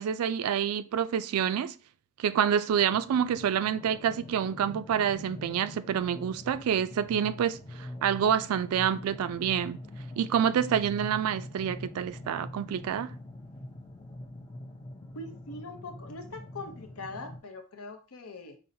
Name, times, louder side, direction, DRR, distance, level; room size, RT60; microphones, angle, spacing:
voice 1, 0.0-1.7 2.2-9.8 10.2-13.1, right 8 dB, 85° right, 0.3 m, -27 dB
sound 1, 2.7-17.4, left 1 dB, 20° left, 0.4 m, -44 dB
voice 2, 15.1-18.6, left 2 dB, 85° left, 0.7 m, -42 dB
5.3 x 2.1 x 2.7 m
head